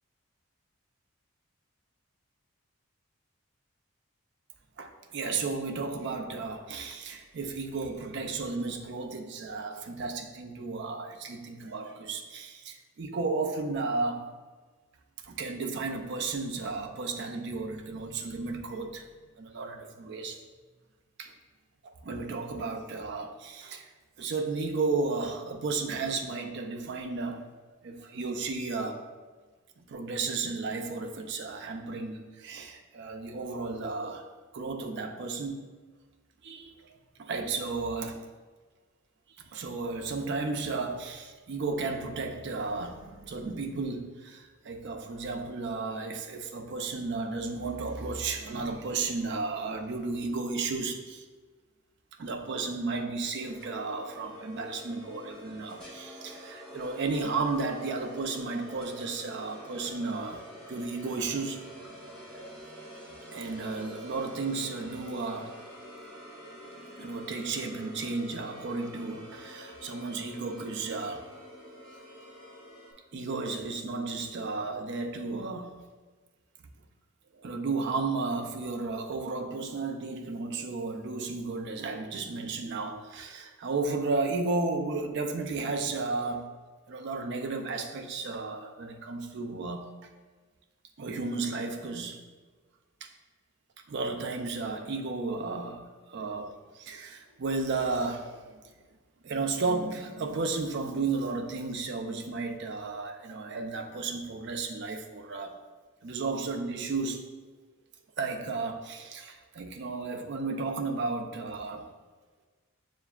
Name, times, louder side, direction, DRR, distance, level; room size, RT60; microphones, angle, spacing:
voice 1, 4.8-14.3 15.2-19.1 19.4-20.4 21.2-21.3 21.8-23.8 24.2-27.4 27.8-29.0 29.8-35.6 36.4-36.9 37.2-38.2 39.5-51.2 52.2-60.4 60.7-61.7 63.3-65.6 67.0-71.3 73.1-75.8 77.4-86.5 86.9-89.9 91.0-92.2 93.0-93.1 93.9-98.4 99.2-105.5 106.0-107.3 108.2-111.9, right 3 dB, 55° right, 4 dB, 0.4 m, -33 dB
sound 1, 53.4-72.9, equal, 5° left, 1.0 m, -47 dB
6.7 x 2.5 x 2.4 m, 1.4 s
head